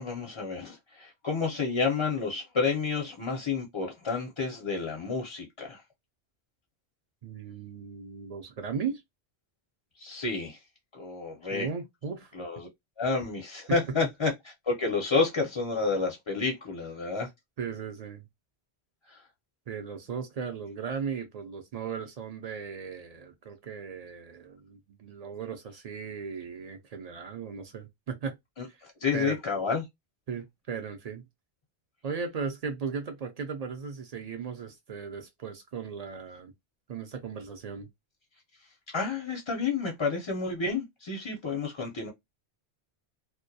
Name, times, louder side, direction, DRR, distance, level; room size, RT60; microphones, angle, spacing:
voice 1, 0.0-5.8 10.0-10.6 10.9-11.7 12.3-12.7 13.0-14.3 14.6-17.3 19.1-19.2 28.6-29.9 38.9-42.1, left 4 dB, 40° left, 0.4 m, -30 dB
voice 2, 7.2-9.0 11.5-12.3 13.7-14.0 17.6-18.2 19.7-28.4 28.7-28.8 29.1-29.4 30.3-31.2 32.0-36.5 36.9-37.9, right 6 dB, 60° right, 0.4 m, -37 dB
2.2 x 2.2 x 2.6 m
omnidirectional pair, 1.1 m